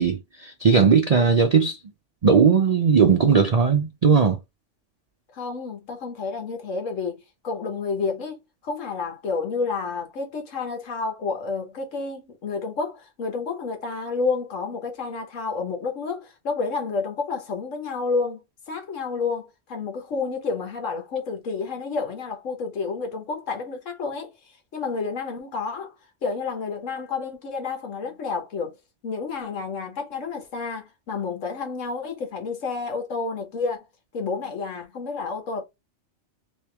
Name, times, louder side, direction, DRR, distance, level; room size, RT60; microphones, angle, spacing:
voice 1, 0.0-1.8 2.2-4.4, right 6 dB, 55° right, 0.4 m, -18 dB
voice 2, 5.3-8.4 8.6-24.3 24.7-25.9 26.2-28.7 29.0-33.8 34.1-35.6, left 4 dB, 80° left, 1.5 m, -30 dB
3.6 x 3.0 x 3.3 m
omnidirectional pair, 1.3 m